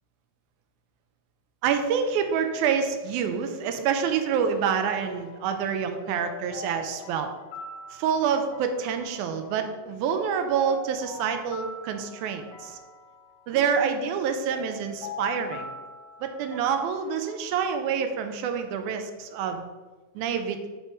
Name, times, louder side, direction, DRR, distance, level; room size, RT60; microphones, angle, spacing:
voice 1, 1.6-7.3 7.9-12.8 13.5-15.7 16.2-19.6 20.2-20.7, right 7 dB, 90° right, 6 dB, 2.1 m, -27 dB
sound 1, 5.0-18.3, left 3 dB, 75° left, 1.8 m, -43 dB
7.9 x 3.0 x 4.4 m, 1.3 s
omnidirectional pair, 3.4 m